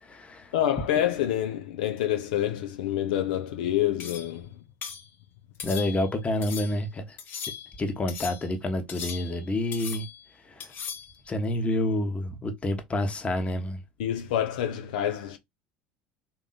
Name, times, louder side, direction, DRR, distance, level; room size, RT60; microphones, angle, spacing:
voice 1, 0.0-0.5 5.6-7.2 7.8-10.0 10.4-10.7 11.3-13.8, left 1 dB, 25° left, 1.3 m, -28 dB
voice 2, 0.5-4.6 14.0-15.4, left 11 dB, 75° left, 0.6 m, -27 dB
sound 1, 4.0-4.4 4.8-5.1 5.6-6.1 6.4-6.8 7.2-7.8 8.1-8.5 8.9-9.5 9.7-10.2 10.6-11.1, left 7 dB, 50° left, 1.4 m, -38 dB
3.6 x 3.0 x 4.0 m
hypercardioid pair, 70°, 5 cm